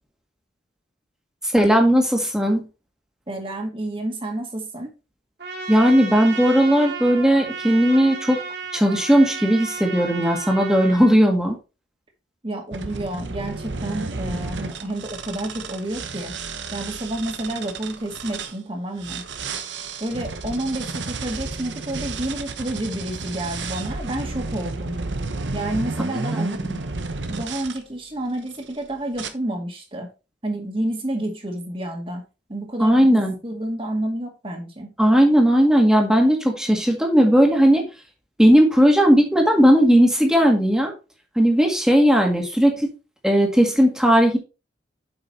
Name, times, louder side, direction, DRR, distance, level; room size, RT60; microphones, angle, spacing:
voice 1, 1.5-2.7 5.7-8.4 8.7-11.6 26.3-26.8 32.8-33.3 35.0-37.9 38.4-40.9 41.4-42.9 43.2-44.4, equal, 5° right, 2 dB, 1.7 m, -17 dB
voice 2, 3.3-4.9 12.4-16.3 16.7-19.2 20.0-25.0 25.5-26.5 27.3-30.1 30.4-32.2 32.5-34.9, right 1 dB, 30° right, 3 dB, 2.0 m, -29 dB
Trumpet, 5.4-11.2, right 5 dB, 65° right, 2.9 m, -33 dB
sound 1, 12.7-18.5 19.0-27.8 28.4-28.8 29.2-29.3, right 3 dB, 80° right, 1.0 m, -32 dB
8.0 x 5.6 x 4.1 m, 0.31 s
head